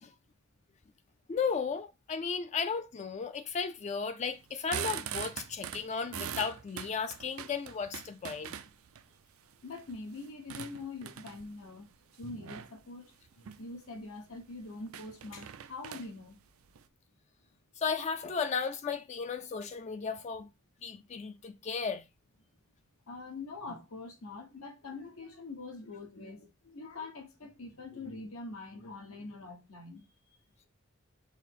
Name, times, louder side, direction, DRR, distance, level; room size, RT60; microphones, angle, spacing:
voice 1, 1.3-8.6 17.8-20.5 20.8-22.0, left 5 dB, 35° left, 0.3 m, -35 dB
sound 1, 4.4-9.0 9.5-11.6 12.4-12.8 13.3-13.6 14.0-14.1 14.4-14.5 14.9-16.9, right 9 dB, 90° right, 0.4 m, -41 dB
voice 2, 9.6-11.9 12.2-16.4 23.1-30.0, left 3 dB, 85° left, 1.1 m, -44 dB
5.5 x 2.0 x 4.5 m
head